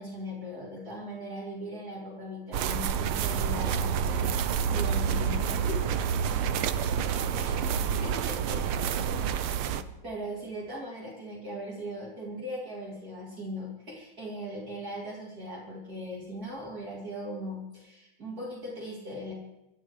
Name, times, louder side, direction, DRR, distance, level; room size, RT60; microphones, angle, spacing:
voice 1, 0.0-6.3 7.3-7.6 7.8-9.0 10.0-19.3, equal, 45° right, -5 dB, 4.0 m, -39 dB
sound 1, 2.5-9.8, right 7 dB, 85° right, 1.7 m, -28 dB
voice 2, 6.3-8.0 8.3-10.0, left 1 dB, 10° left, -4 dB, 7.0 m, -48 dB
26.5 x 13.0 x 3.3 m, 0.91 s
omnidirectional pair, 2.3 m